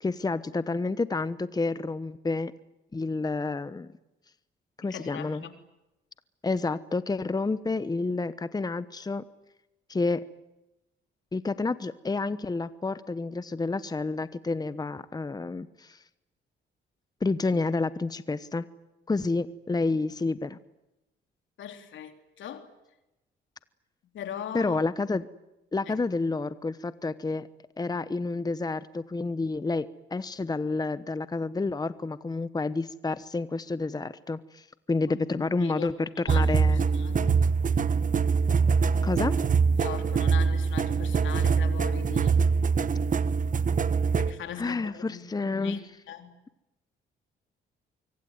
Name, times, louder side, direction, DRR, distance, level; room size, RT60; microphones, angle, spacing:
voice 1, 0.0-2.5 2.9-3.9 4.8-5.4 6.4-9.2 9.9-10.2 11.3-16.0 17.2-18.7 19.1-20.6 24.5-25.2 25.7-27.5 27.8-36.8 39.0-39.3 44.6-45.8, left 3 dB, 20° left, 14 dB, 1.0 m, -29 dB
voice 2, 4.9-5.5 21.6-22.7 24.1-24.8 25.9-26.0 35.0-35.9 36.2-37.4 39.8-42.4 44.2-45.8 46.1-46.3, left 9 dB, 75° left, 7 dB, 3.6 m, -40 dB
sound 1, 36.3-44.3, right 5 dB, 40° right, 1.2 m, -24 dB
25.0 x 24.0 x 9.5 m, 0.94 s
cardioid pair, 90°, 20 cm